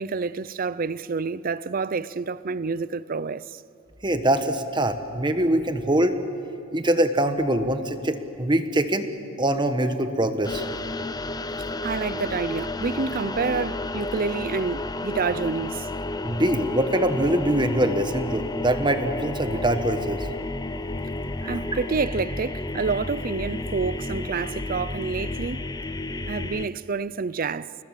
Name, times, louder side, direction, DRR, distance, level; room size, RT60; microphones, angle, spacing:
voice 1, 0.0-3.6 11.8-15.9 21.5-25.6 26.3-27.7, right 4 dB, 40° right, 0.5 m, -28 dB
voice 2, 4.0-6.2 6.7-9.1 9.4-10.6 16.2-20.3 21.4-21.6, right 1 dB, 20° right, 1.3 m, -23 dB
sound 1, 10.4-26.7, left 2 dB, 20° left, 0.6 m, -32 dB
28.5 x 20.0 x 7.6 m
head